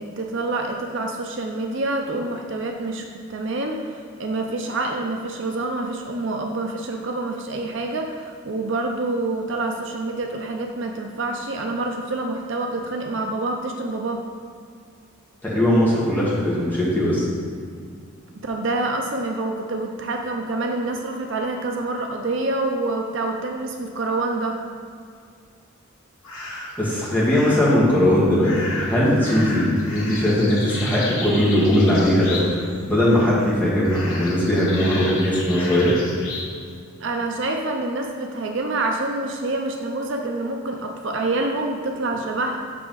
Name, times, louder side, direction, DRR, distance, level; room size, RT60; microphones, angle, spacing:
voice 1, 0.0-3.0 3.3-14.2 18.4-24.6 37.0-42.6, right 2 dB, 55° right, 2 dB, 0.6 m, -27 dB
voice 2, 15.4-17.3 26.8-32.4 32.9-35.9, left 1 dB, 10° left, -8 dB, 1.8 m, -19 dB
sound 1, 26.2-26.8 27.3-27.8 28.4-32.7 33.0-33.5 33.8-36.5, left 2 dB, 70° left, 1.7 m, -33 dB
7.5 x 6.1 x 3.9 m, 2.2 s
head